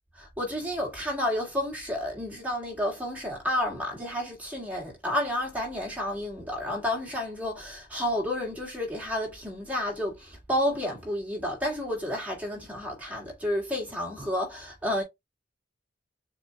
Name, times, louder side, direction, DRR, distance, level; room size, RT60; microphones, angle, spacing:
voice 1, 0.2-15.0, left 1 dB, 10° right, 2.0 m, -31 dB
7.1 x 2.6 x 2.3 m
head